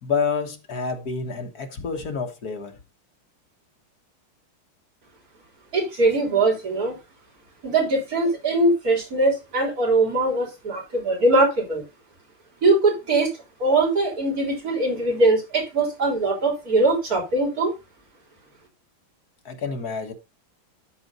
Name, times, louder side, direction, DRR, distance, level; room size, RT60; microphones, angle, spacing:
voice 1, 0.0-2.7 19.5-20.1, left 5 dB, 50° left, 1.9 m, -28 dB
voice 2, 5.7-6.9 7.6-11.8 12.6-13.3 13.6-17.7, right 2 dB, 45° right, 3.8 m, -21 dB
12.5 x 4.2 x 5.4 m
omnidirectional pair, 2.3 m